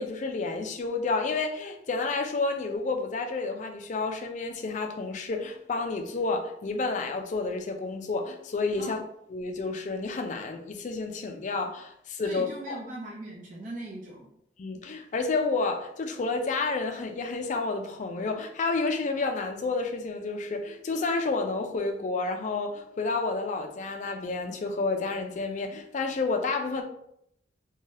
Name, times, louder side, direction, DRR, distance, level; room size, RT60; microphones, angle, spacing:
voice 1, 0.0-9.0 9.3-12.8 14.6-26.8, left 3 dB, 40° left, 0.4 m, -30 dB
voice 2, 12.2-14.3, right 1 dB, 45° right, 0.6 m, -39 dB
2.7 x 2.2 x 3.1 m
head